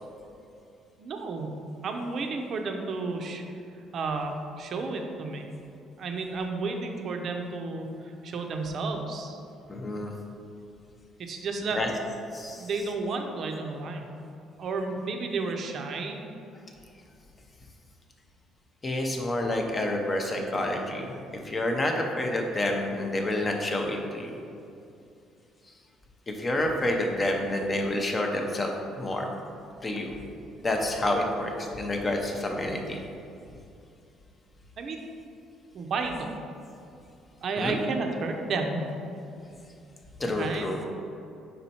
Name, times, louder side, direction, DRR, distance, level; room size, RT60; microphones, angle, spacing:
voice 1, 1.0-3.4 3.9-5.5 6.0-9.4 11.2-11.8 12.6-14.0 14.6-16.2 34.8-35.0 35.7-36.4 37.4-38.8 40.2-40.7, right 3 dB, 45° right, 3 dB, 0.6 m, -32 dB
voice 2, 9.7-10.1 11.8-11.9 12.3-12.7 18.8-21.2 21.4-24.3 26.3-28.7 29.0-29.3 29.8-30.1 30.6-33.0 37.6-37.8 40.2-40.8, left 1 dB, 20° left, 2 dB, 0.6 m, -28 dB
5.3 x 4.3 x 4.2 m, 2.7 s
cardioid pair, 155°, 0 cm